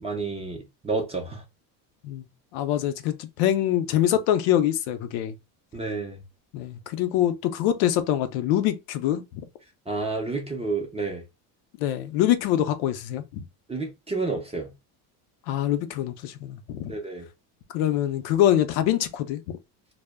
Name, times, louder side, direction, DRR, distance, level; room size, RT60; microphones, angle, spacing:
voice 1, 0.0-1.4 5.7-6.2 9.9-11.2 13.7-14.7 16.9-17.3, right 3 dB, 15° right, 0.5 m, -30 dB
voice 2, 2.5-5.3 6.5-9.2 11.8-13.4 15.5-16.9 17.7-19.4, left 12 dB, 70° left, 0.6 m, -24 dB
2.1 x 2.0 x 3.3 m
supercardioid pair, 105°, 46 cm